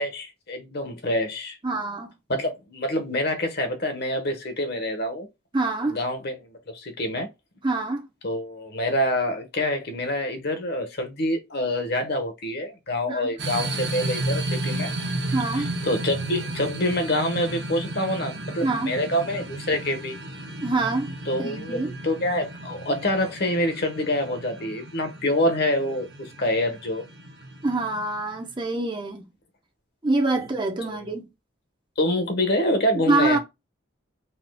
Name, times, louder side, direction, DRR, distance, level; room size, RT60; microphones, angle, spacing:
voice 1, 0.0-1.6 2.3-5.3 5.8-7.3 8.2-14.9 15.5-20.1 21.3-27.0 30.8-31.1 32.0-33.4, left 1 dB, 50° left, 1.1 m, -26 dB
voice 2, 1.6-2.1 5.5-6.0 7.6-8.0 13.1-13.4 15.3-15.7 18.6-18.9 20.6-21.1 21.4-21.9 27.6-29.3 30.0-31.2 33.1-33.4, right 2 dB, 25° right, 0.8 m, -25 dB
sound 1, 13.4-28.5, right 2 dB, 55° right, 0.9 m, -33 dB
4.2 x 3.9 x 2.2 m
head